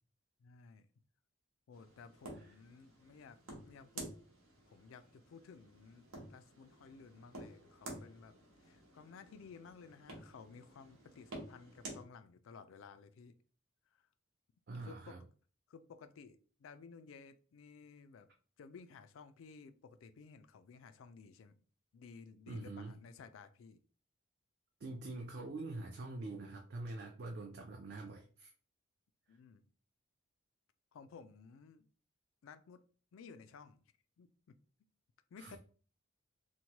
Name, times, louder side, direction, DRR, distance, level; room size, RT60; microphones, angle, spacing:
voice 1, 0.4-0.8 1.7-3.4 3.6-4.1 4.7-8.3 8.6-13.3 13.9-14.0 14.8-15.2 15.7-18.3 18.6-21.5 21.9-23.8 29.3-29.6 30.9-31.9 32.4-32.8 33.1-33.8 34.2-34.6 35.3-35.6, left 5 dB, 75° left, 11 dB, 0.3 m, -55 dB
sound 1, 1.7-12.0, right 2 dB, 90° right, 0.9 m, -52 dB
voice 2, 14.7-15.2 22.5-23.0 24.8-28.5 35.4-35.6, right 2 dB, 50° right, 1 dB, 0.4 m, -45 dB
3.0 x 2.2 x 2.8 m, 0.39 s
head